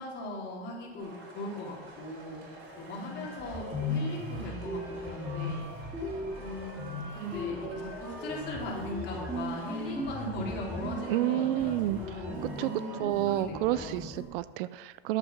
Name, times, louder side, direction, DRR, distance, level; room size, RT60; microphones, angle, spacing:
voice 1, 0.0-5.6 6.4-14.0, left 1 dB, 35° left, -4 dB, 3.9 m, -39 dB
sound 1, 1.0-13.0, right 2 dB, 85° right, 4.0 m, -48 dB
sound 2, 2.6-2.7 3.0-14.2, left 1 dB, 5° right, 2.6 m, -37 dB
voice 2, 11.1-12.0 12.6-12.7 13.0-15.2, right 15 dB, 60° right, 16 dB, 0.5 m, -29 dB
11.0 x 8.0 x 6.1 m, 1.4 s
supercardioid pair, 140°, 31 cm